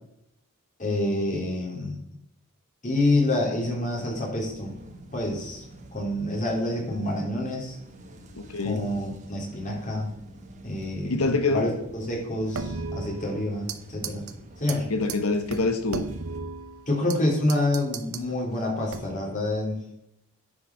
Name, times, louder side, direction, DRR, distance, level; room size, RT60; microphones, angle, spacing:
voice 1, 0.8-2.0 2.8-4.8 5.1-5.6 5.9-7.8 8.6-10.1 10.6-14.2 14.6-14.9 16.9-19.8, left 1 dB, 35° left, 3.5 m, -27 dB
sound 1, 3.8-16.4, right 1 dB, 35° right, 1.3 m, -47 dB
voice 2, 8.3-8.9 11.0-11.7 14.9-16.0, left 3 dB, 80° left, 1.2 m, -25 dB
sound 2, 12.5-13.8 14.0-14.3 14.7-14.8 15.1-15.2 15.5-17.2 17.5-18.3 18.9-19.3, right 4 dB, 80° right, 0.9 m, -35 dB
10.0 x 4.9 x 6.1 m
head